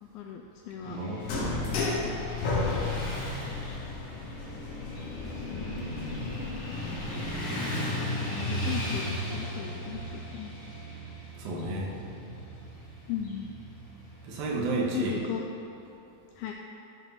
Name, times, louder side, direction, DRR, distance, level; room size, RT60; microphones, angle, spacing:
voice 1, 0.0-1.0 5.1-5.8 8.3-10.5 13.1-13.5 14.9-15.4 16.4-16.5, left 9 dB, 85° left, 2 dB, 2.2 m, -37 dB
Motorcycle / Traffic noise roadway noise, 0.8-14.9, left 1 dB, 40° left, 2.5 m, -36 dB
voice 2, 0.8-1.9 11.4-11.9 14.2-15.2, right 2 dB, 70° right, -2 dB, 2.9 m, -32 dB
sound 1, 1.2-7.3, left 3 dB, 65° left, 2.7 m, -34 dB
13.5 x 5.1 x 5.4 m, 2.9 s
omnidirectional pair, 4.6 m